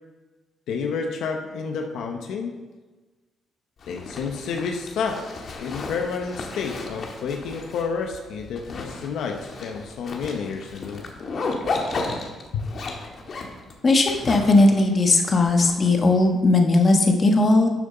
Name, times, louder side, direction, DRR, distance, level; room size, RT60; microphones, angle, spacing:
voice 1, 0.7-2.6 3.9-5.2 5.6-11.0 12.5-12.7, left 5 dB, 80° left, 3 dB, 0.9 m, -30 dB
Zipper (clothing), 3.8-16.3, left 3 dB, 55° left, 1.6 m, -34 dB
voice 2, 13.8-17.7, left 2 dB, 40° left, 3 dB, 1.3 m, -18 dB
11.5 x 6.7 x 3.9 m, 1.2 s
cardioid pair, 90°, 0 cm